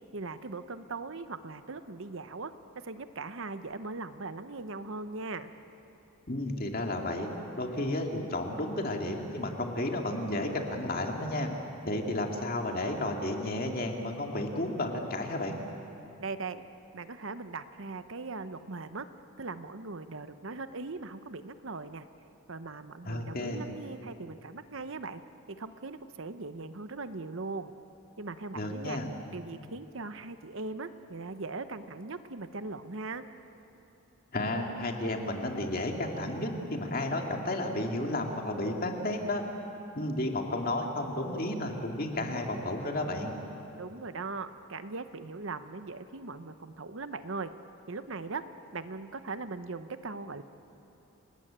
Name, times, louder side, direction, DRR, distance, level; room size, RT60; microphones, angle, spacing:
voice 1, 0.1-5.5 16.2-16.6 16.9-19.1 19.4-22.1 22.5-25.2 25.5-27.7 28.2-29.0 29.3-33.3 43.8-47.5 47.9-48.4 48.7-50.4, right 3 dB, 65° right, 11 dB, 0.9 m, -39 dB
voice 2, 6.3-7.3 7.6-11.5 11.8-15.6 23.0-23.7 28.5-29.1 34.3-39.4 39.9-43.3, left 1 dB, 45° left, 2 dB, 2.4 m, -32 dB
29.0 x 19.0 x 8.8 m, 2.9 s
head